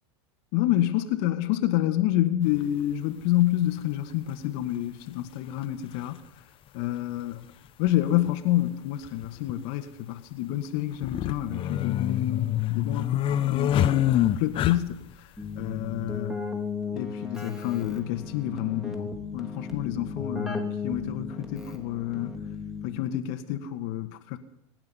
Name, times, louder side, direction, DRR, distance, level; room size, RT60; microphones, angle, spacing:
voice 1, 0.5-6.2 6.7-7.4 7.8-15.3 15.6-16.4 16.9-22.4 22.8-24.4, left 13 dB, 55° left, 1.5 m, -28 dB
sound 1, 2.5-2.7 4.1-4.2 5.6-5.7 5.9-6.0 7.9-8.0 8.3-8.4 9.0-9.5 10.9-15.1, left 12 dB, 35° left, 1.0 m, -25 dB
Keyboard (musical), 15.4-23.2, left 4 dB, ahead, 2.6 m, -36 dB
24.5 x 10.5 x 5.5 m
hypercardioid pair, 110°, 16 cm